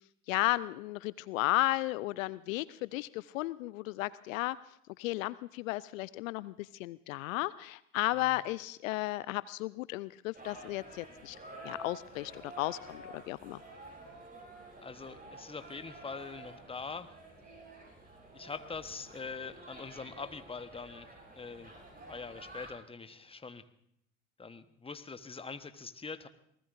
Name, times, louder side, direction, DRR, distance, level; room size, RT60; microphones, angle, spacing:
voice 1, 0.3-4.6 5.0-11.4 11.6-13.6, left 18 dB, 70° left, 19 dB, 0.5 m, -34 dB
sound 1, 10.3-22.7, right 1 dB, 20° right, 7.5 m, -50 dB
voice 2, 14.8-17.1 18.3-21.8 22.0-23.6 24.4-26.3, left 4 dB, 15° left, 11 dB, 1.1 m, -43 dB
27.0 x 19.5 x 2.6 m, 0.71 s
hypercardioid pair, 70°, 41 cm